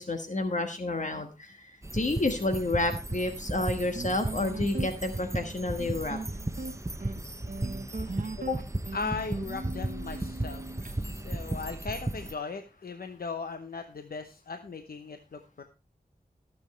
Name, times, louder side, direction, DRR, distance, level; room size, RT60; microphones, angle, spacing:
voice 1, 0.0-6.2 8.4-8.6, left 2 dB, 55° left, 6 dB, 1.4 m, -30 dB
sound 1, 1.8-12.3, right 2 dB, 20° right, 0.8 m, -35 dB
sound 2, 4.0-10.9, right 3 dB, 65° right, 1.2 m, -39 dB
voice 2, 7.9-8.3 8.9-15.6, left 4 dB, 90° left, 7 dB, 0.8 m, -38 dB
17.5 x 7.2 x 3.1 m, 0.31 s
wide cardioid pair, 60°, 15 cm